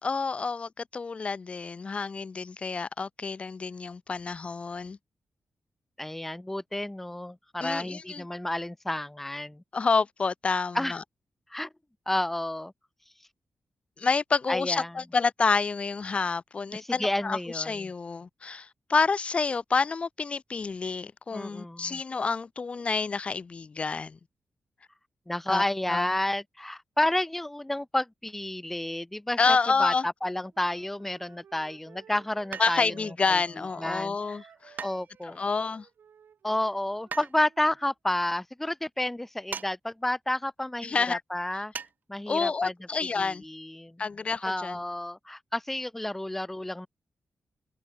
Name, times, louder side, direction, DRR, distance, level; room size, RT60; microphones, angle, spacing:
voice 1, 0.0-5.0 7.6-8.2 9.7-11.0 14.0-24.2 25.5-25.6 25.9-26.1 29.4-30.0 32.6-34.8 35.2-35.9 40.8-41.2 42.3-43.4 44.0-44.8, left 4 dB, 35° left, 1.0 m, -28 dB
voice 2, 6.0-9.6 10.7-11.0 11.5-11.7 12.1-12.7 14.5-14.9 16.7-17.9 21.3-22.0 25.3-32.9 33.3-33.4 33.8-34.4 34.8-35.4 36.4-41.7 42.1-42.7 43.2-44.0 44.4-46.9, left 1 dB, 5° left, 0.5 m, -31 dB
Wind instrument woodwind instrument, 30.5-37.9, right 7 dB, 70° right, 5.3 m, -56 dB
sound 1, 32.5-33.1 34.8-35.5 37.1-37.4 39.5-39.7 40.0-40.1 41.7-41.9 42.3-42.4, right 6 dB, 55° right, 2.3 m, -38 dB
wide cardioid pair, 165°, 4 cm